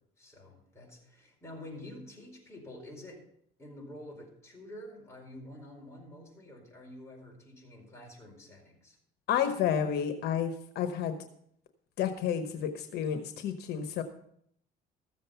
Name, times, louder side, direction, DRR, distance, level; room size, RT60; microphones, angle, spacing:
voice 1, 0.2-3.3 3.6-9.0, left 1 dB, 15° left, -1 dB, 4.7 m, -48 dB
voice 2, 9.3-11.1 12.0-14.0, left 8 dB, 75° left, 8 dB, 1.1 m, -30 dB
14.5 x 7.5 x 5.7 m, 0.69 s
cardioid pair, 110°, 17 cm